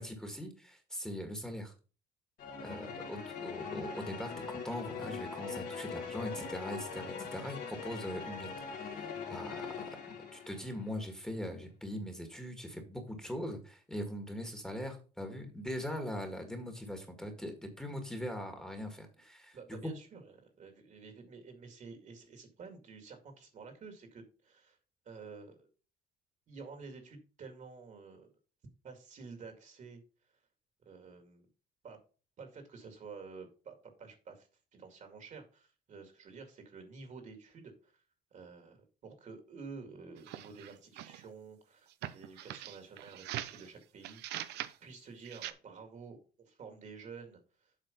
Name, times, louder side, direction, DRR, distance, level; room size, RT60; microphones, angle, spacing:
voice 1, 0.0-1.7 2.6-19.6 19.8-19.9, equal, 5° left, 5 dB, 1.7 m, -41 dB
sound 1, 2.4-10.9, left 5 dB, 65° left, 2.3 m, -42 dB
voice 2, 19.5-24.8 25.1-25.7 26.5-28.3 28.8-30.0 30.9-31.5 31.8-32.0 32.4-37.9 38.3-47.7, right 4 dB, 50° right, 6 dB, 2.2 m, -50 dB
sound 2, 40.2-41.3 41.9-43.7 44.0-44.8 45.2-45.5, right 13 dB, 80° right, 0.6 m, -42 dB
7.7 x 4.5 x 5.2 m, 0.36 s
cardioid pair, 110°, 17 cm